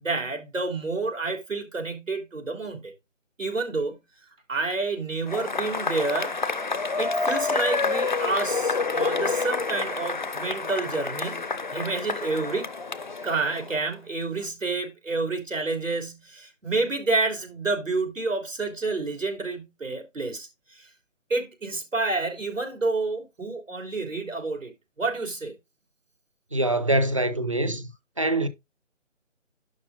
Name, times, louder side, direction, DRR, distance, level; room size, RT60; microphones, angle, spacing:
voice 1, 0.0-2.9 3.4-4.0 4.5-6.3 7.0-11.4 11.7-12.7 13.2-20.9 21.3-24.7 25.0-25.5, right 3 dB, 85° right, 3.7 m, -29 dB
Cheering / Applause / Crowd, 5.3-13.9, left 4 dB, 40° left, 0.6 m, -28 dB
voice 2, 26.5-27.9 28.2-28.5, right 1 dB, 25° right, 0.6 m, -24 dB
11.0 x 4.1 x 3.7 m
figure-of-eight pair, 160°, 38 cm